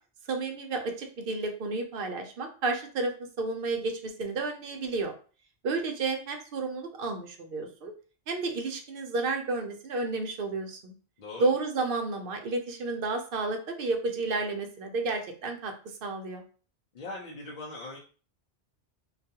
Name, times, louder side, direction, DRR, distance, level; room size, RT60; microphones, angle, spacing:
voice 1, 0.3-3.1 3.4-5.1 5.6-7.9 8.3-10.9 11.4-15.7 16.0-16.4, right 3 dB, 65° right, 4 dB, 0.7 m, -31 dB
voice 2, 16.9-18.0, left 2 dB, 55° left, -4 dB, 0.6 m, -40 dB
2.3 x 2.3 x 2.7 m, 0.38 s
omnidirectional pair, 1.1 m